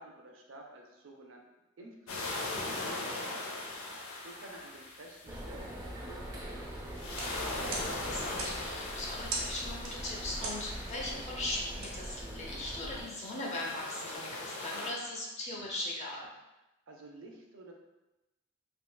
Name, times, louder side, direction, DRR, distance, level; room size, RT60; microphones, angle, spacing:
voice 1, 0.0-1.4 1.8-3.5 4.2-6.8 16.9-17.7, right 2 dB, 65° right, 1 dB, 0.5 m, -51 dB
sound 1, 2.1-5.8 6.8-11.9 12.7-14.9, left 2 dB, 85° left, 0.6 m, -40 dB
sound 2, 5.3-13.0, equal, 15° right, 0.4 m, -42 dB
sound 3, 7.1-12.8, right 3 dB, 85° right, 0.9 m, -43 dB
voice 2, 7.9-16.3, left 1 dB, 35° left, -3 dB, 0.6 m, -39 dB
3.6 x 2.8 x 2.2 m, 0.99 s
head